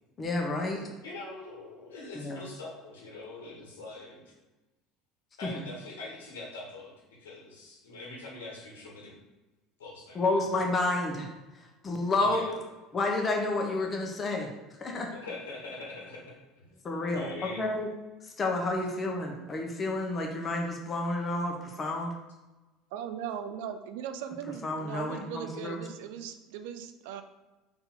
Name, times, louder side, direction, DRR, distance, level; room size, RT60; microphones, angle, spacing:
voice 1, 0.2-0.8 2.1-2.4 5.5-5.6 10.1-11.3 11.8-12.4 12.9-14.5 14.8-15.1 16.8-17.3 17.6-17.9 18.4-22.1 24.6-25.8, left 2 dB, 30° left, 1 dB, 1.0 m, -30 dB
voice 2, 1.0-4.3 5.4-6.9 7.2-9.2 9.8-10.4 11.8-11.9 12.2-12.6 15.1-16.8 17.1-17.6, left 2 dB, 80° left, -2 dB, 1.2 m, -43 dB
voice 3, 22.9-27.2, right 8 dB, 70° right, 9 dB, 0.4 m, -39 dB
4.1 x 2.9 x 4.0 m, 1.1 s
hypercardioid pair, 70°, 0 cm